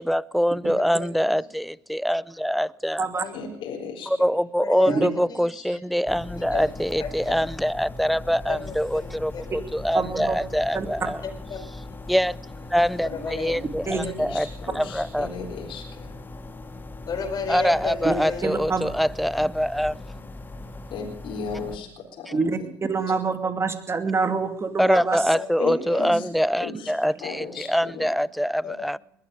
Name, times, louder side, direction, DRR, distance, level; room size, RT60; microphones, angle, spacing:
voice 1, 0.0-3.1 4.2-11.2 12.1-12.4 12.7-14.5 14.8-15.3 17.5-20.0 24.8-29.0, equal, ahead, 0.5 m, -24 dB
voice 2, 0.9-1.3 3.1-3.3 4.6-5.0 5.3-5.8 6.5-6.6 7.0-7.3 8.5-9.0 9.3-9.4 11.2-11.9 13.0-13.6 13.9-14.1 17.1-18.4 23.1-23.2 25.1-25.5 25.9-26.1 28.6-28.9, left 5 dB, 40° left, 4.8 m, -33 dB
voice 3, 3.2-4.3 13.8-16.2 20.9-22.7 25.6-26.3 26.6-28.1, left 5 dB, 55° left, 4.0 m, -36 dB
sound 1, 6.1-21.8, left 2 dB, 20° left, 1.6 m, -39 dB
voice 4, 9.9-10.4 10.7-10.9 13.9-14.0 18.0-18.1 18.4-18.8 22.3-22.6 22.9-25.2, right 4 dB, 25° right, 2.6 m, -25 dB
21.0 x 12.5 x 5.1 m
supercardioid pair, 80°, 10 cm